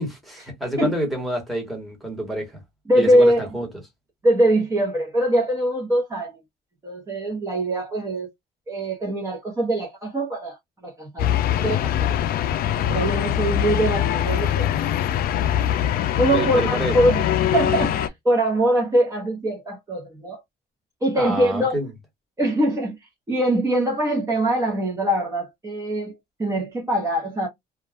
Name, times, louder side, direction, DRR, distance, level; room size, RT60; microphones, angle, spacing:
voice 1, 0.0-2.6 2.9-3.7 16.3-17.0 21.2-21.9, right 1 dB, ahead, 1.1 m, -28 dB
voice 2, 2.9-3.5 4.2-6.4 6.8-8.3 8.7-10.6 10.8-12.1 12.8-14.7 16.2-17.2 17.5-20.4 21.0-21.8 22.4-26.1 26.4-27.5, right 1 dB, 15° right, 0.8 m, -22 dB
sound 1, 11.2-18.1, left 11 dB, 60° left, 0.4 m, -22 dB
2.3 x 2.2 x 3.3 m
cardioid pair, 150°, 18 cm